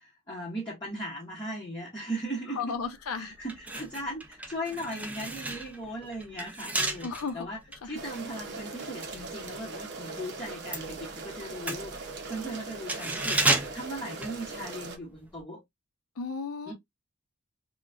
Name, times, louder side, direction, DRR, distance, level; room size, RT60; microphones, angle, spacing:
voice 1, 0.0-2.8 3.1-7.6 7.8-12.0 12.3-15.6 16.6-16.7, right 1 dB, 20° left, 1.0 m, -38 dB
voice 2, 2.6-3.3 7.0-7.5 7.8-7.9 16.2-16.7, left 5 dB, 80° left, 0.6 m, -34 dB
sound 1, 2.8-3.0 3.4-10.0 10.3-15.0 15.2-15.4, right 2 dB, 5° right, 0.4 m, -33 dB
sound 2, 7.9-15.0, right 3 dB, 50° right, 0.7 m, -40 dB
3.8 x 2.2 x 2.3 m
head